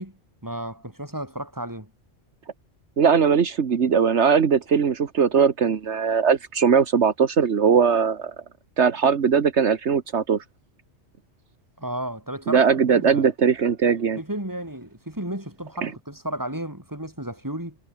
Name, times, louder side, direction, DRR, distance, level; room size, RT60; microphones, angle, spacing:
voice 1, 0.0-1.9 11.8-13.3 14.2-17.8, right 1 dB, 15° right, 4.8 m, -33 dB
voice 2, 3.0-8.3 8.8-10.4 12.5-14.2 15.8-15.9, right 6 dB, 75° right, 1.6 m, -20 dB
omnidirectional pair, 1.2 m